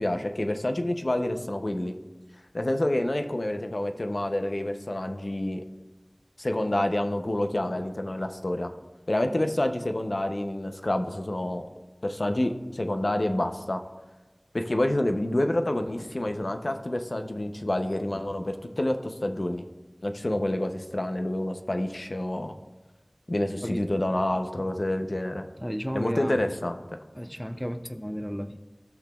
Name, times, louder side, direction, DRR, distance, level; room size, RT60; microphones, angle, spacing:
voice 1, 0.0-1.9 2.5-5.6 6.4-8.7 9.1-11.7 12.0-13.8 14.5-19.7 20.0-22.5 23.3-25.5 25.9-26.8, left 1 dB, 70° left, 6 dB, 0.6 m, -28 dB
voice 2, 23.6-23.9 25.6-26.5 27.1-28.6, equal, 5° left, 10 dB, 0.4 m, -33 dB
15.0 x 6.0 x 2.3 m, 1.2 s
wide cardioid pair, 40°, 0 cm